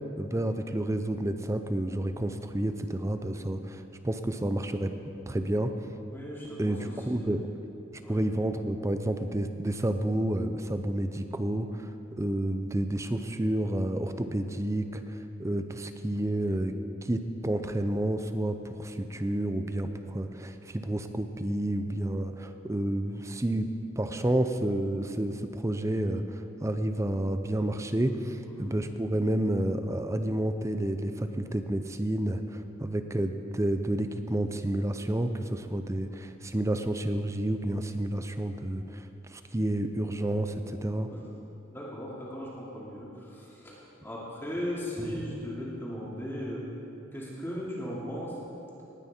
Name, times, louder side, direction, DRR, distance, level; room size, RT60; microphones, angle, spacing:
voice 1, 0.2-4.9 5.3-5.7 6.6-7.5 8.1-11.9 12.2-16.7 17.0-39.0 39.3-41.1, right 1 dB, 15° right, 8 dB, 0.6 m, -30 dB
voice 2, 6.1-7.4 8.0-8.2 28.4-28.8 41.1-41.2 41.7-46.6 47.1-48.4, equal, 10° left, -6 dB, 2.6 m, -37 dB
19.5 x 9.5 x 4.3 m, 2.9 s
head